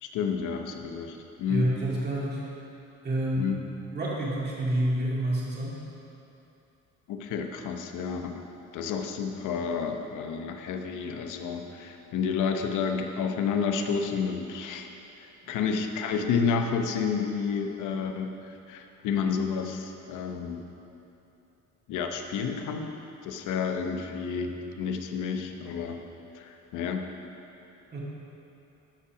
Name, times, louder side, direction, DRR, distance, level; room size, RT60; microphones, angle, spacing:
voice 1, 0.0-1.7 3.4-3.6 7.1-8.4 8.7-14.9 15.2-20.6 21.9-22.9 23.2-26.0 26.3-27.1, left 6 dB, 90° left, 5 dB, 0.9 m, -30 dB
voice 2, 1.5-2.4 3.0-3.5 3.9-5.8 27.9-28.0, right 1 dB, 35° right, -6 dB, 2.2 m, -28 dB
12.5 x 5.6 x 5.9 m, 2.9 s
cardioid pair, 150°, 30 cm